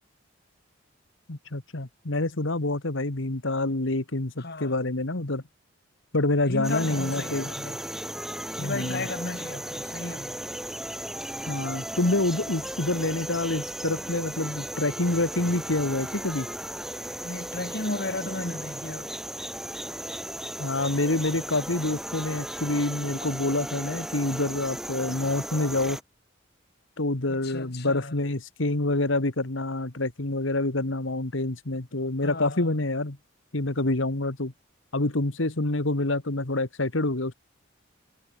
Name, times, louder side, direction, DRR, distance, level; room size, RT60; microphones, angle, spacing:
voice 1, 1.3-5.4 6.1-7.5 8.6-9.1 11.5-16.5 20.6-26.0 27.0-33.2 33.5-34.5 34.9-37.3, left 2 dB, 70° left, 1.8 m, -27 dB
voice 2, 4.4-4.8 6.4-7.8 8.6-10.4 17.2-19.1 27.3-28.2 32.2-32.7, left 2 dB, 50° left, 2.7 m, -34 dB
sound 1, 6.6-26.0, equal, ahead, 3.0 m, -36 dB
head